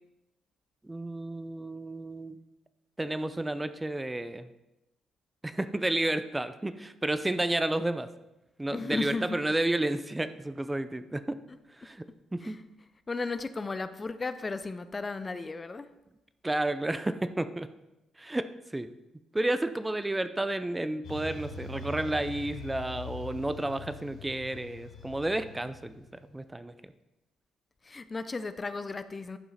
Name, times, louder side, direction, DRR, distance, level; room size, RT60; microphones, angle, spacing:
voice 1, 0.8-2.4 3.0-4.5 5.4-8.1 8.6-11.4 11.7-12.1 12.3-12.6 16.4-17.7 18.2-18.9 19.3-26.0 26.3-26.9, right 1 dB, 15° right, 12 dB, 0.5 m, -31 dB
voice 2, 8.7-9.3 12.4-12.6 13.1-15.9 27.8-29.4, left 3 dB, 35° left, 12 dB, 0.5 m, -35 dB
sound 1, 21.0-26.4, left 3 dB, 70° left, 1.9 m, -43 dB
11.0 x 5.6 x 4.2 m, 0.96 s
supercardioid pair, 55°, 0 cm